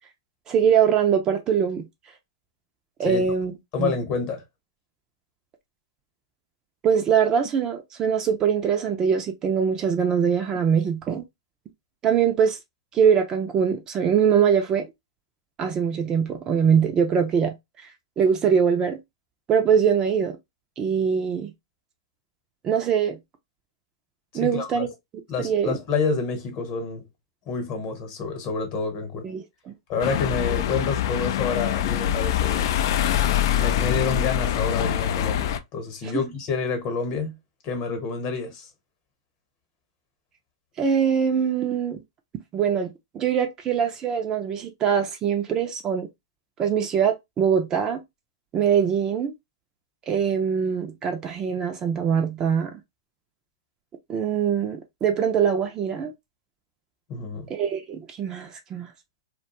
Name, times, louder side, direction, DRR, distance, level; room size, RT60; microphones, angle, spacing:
voice 1, 0.5-1.9 3.0-3.5 3.8-3.9 6.8-11.2 12.0-12.6 12.9-14.9 15.6-17.5 18.2-19.0 19.5-20.4 20.8-21.5 22.6-23.2 24.3-24.9 25.4-25.8 29.2-29.7 36.0-36.2 40.8-42.0 42.5-42.9 43.1-46.1 46.6-48.0 48.5-49.3 50.1-52.8 54.1-56.1 57.5-58.9, right 7 dB, 25° right, 0.4 m, -22 dB
voice 2, 3.7-4.4 24.3-24.9 25.3-27.0 27.5-29.3 29.9-32.7 33.6-37.3 37.6-38.7 57.1-57.5, left 4 dB, 40° left, 1.0 m, -28 dB
sound 1, 30.0-35.6, left 11 dB, 55° left, 0.3 m, -24 dB
2.4 x 2.2 x 2.9 m
hypercardioid pair, 130°, 3 cm